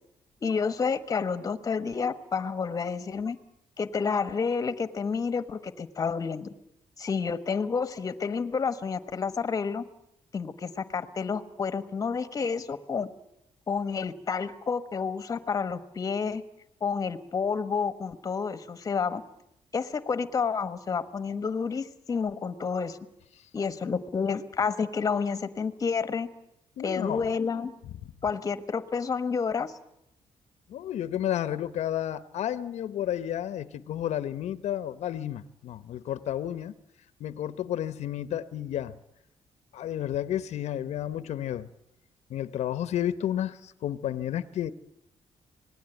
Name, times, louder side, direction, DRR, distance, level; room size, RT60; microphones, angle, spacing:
voice 1, 0.4-3.4 3.8-6.5 7.0-9.8 10.3-13.1 13.7-16.4 16.8-19.2 19.7-23.0 23.5-26.3 26.8-27.7 28.2-29.7, left 5 dB, 30° left, 12 dB, 1.3 m, -29 dB
voice 2, 26.8-27.3 30.7-36.7 37.2-39.0 39.7-41.7 42.3-44.7, left 11 dB, 75° left, 14 dB, 0.9 m, -31 dB
26.0 x 19.5 x 9.1 m, 0.81 s
wide cardioid pair, 170°, 12 cm